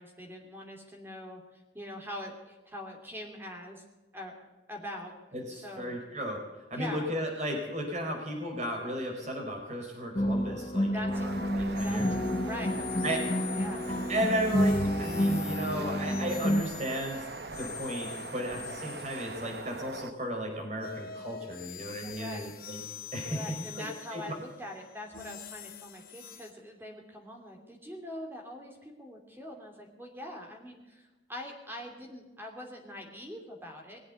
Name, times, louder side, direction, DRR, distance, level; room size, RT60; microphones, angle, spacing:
voice 1, 0.0-3.8 4.1-4.3 4.7-5.1 5.5-6.0 6.7-7.1 10.8-14.3 22.0-22.4 23.2-34.0, left 1 dB, 10° right, 2 dB, 2.8 m, -43 dB
voice 2, 5.3-6.4 6.7-12.1 13.0-13.2 14.1-22.8 23.1-23.5 23.7-23.8 24.1-24.2, equal, 40° right, 2 dB, 4.6 m, -34 dB
sound 1, 10.1-16.6, equal, 30° left, 1.0 m, -29 dB
sound 2, 11.1-20.1, right 3 dB, 65° right, 1.0 m, -42 dB
sound 3, 11.8-20.1 20.8-26.5, left 8 dB, 55° left, 2.9 m, -45 dB
21.0 x 8.0 x 8.2 m, 1.1 s
head